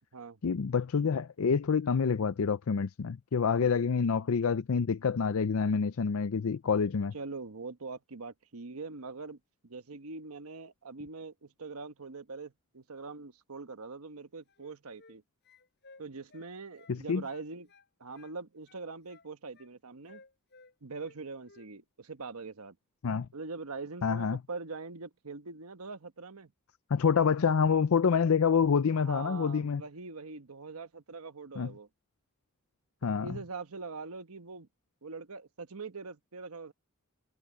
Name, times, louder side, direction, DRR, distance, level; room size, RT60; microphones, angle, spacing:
voice 1, 0.4-7.1 16.9-17.2 23.0-23.3 24.0-24.4 26.9-29.8 31.6-31.7 33.0-33.4, left 6 dB, 70° left, 0.5 m, -27 dB
voice 2, 7.1-15.2 16.0-17.7 18.0-20.2 20.8-22.8 23.3-26.5 28.9-31.9 33.2-34.7 35.0-36.7, right 4 dB, 85° right, 1.1 m, -43 dB
sound 1, 14.5-15.2 15.4-17.0 17.3-18.4 18.7-19.7 20.1-21.2 21.4-21.7, left 3 dB, 50° left, 7.7 m, -58 dB
head